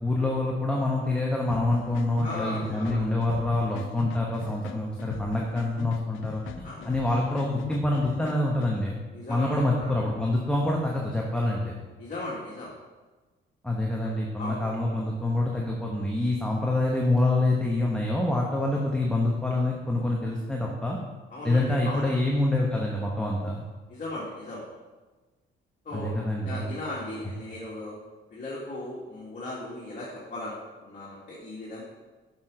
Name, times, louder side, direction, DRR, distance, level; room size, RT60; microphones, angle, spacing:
voice 1, 0.0-9.0 9.3-11.7 13.6-21.0 21.4-23.6 25.9-26.7, left 2 dB, 5° left, -2 dB, 1.2 m, -26 dB
sound 1, 1.5-8.7, left 9 dB, 85° left, 0.6 m, -41 dB
voice 2, 2.2-3.1 6.6-7.0 9.1-9.9 12.0-12.7 14.4-14.7 21.3-22.1 23.9-24.6 25.8-26.1 26.4-28.0 28.3-31.8, left 2 dB, 40° left, -7 dB, 2.3 m, -37 dB
7.3 x 6.1 x 5.0 m, 1.3 s
cardioid pair, 90°, 20 cm